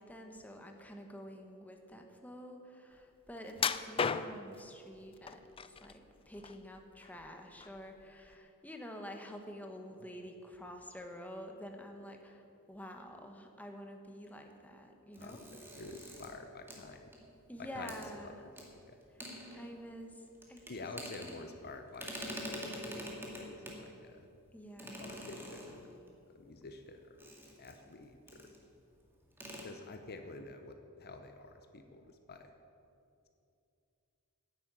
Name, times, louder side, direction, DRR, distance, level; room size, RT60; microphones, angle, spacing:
voice 1, 0.0-15.4 17.5-18.4 19.5-20.2 20.5-20.9 24.5-25.2, equal, 5° left, 3 dB, 1.1 m, -48 dB
sound 1, 3.6-4.6 5.3-5.9 6.3-7.3 7.6-7.8 8.3-8.4, left 6 dB, 25° left, 0.4 m, -34 dB
sound 2, 15.1-17.5 17.9-18.1 18.5-18.7 19.0-20.0 20.3-21.7 21.9-23.9 24.8-26.1 27.2-27.9 28.3-28.6 28.9-29.0 29.3-29.6, equal, 10° right, 2.0 m, -45 dB
voice 2, 15.2-17.1 17.6-18.0 18.2-18.6 18.9-19.0 20.7-24.3 25.0-25.9 26.3-27.3 27.6-28.5 29.6-32.5, left 3 dB, 45° left, 6 dB, 0.8 m, -49 dB
10.5 x 8.7 x 8.9 m, 2.6 s
head